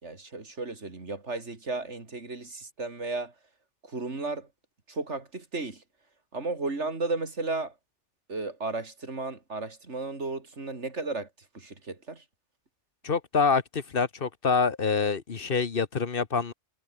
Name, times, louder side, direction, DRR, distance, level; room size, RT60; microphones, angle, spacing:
voice 1, 0.0-3.3 3.8-4.5 4.9-5.8 6.3-7.7 8.3-11.3 11.5-12.2, right 3 dB, 80° right, 3.5 m, -34 dB
voice 2, 13.0-16.5, left 5 dB, 50° left, 1.4 m, -26 dB
omnidirectional pair, 1.2 m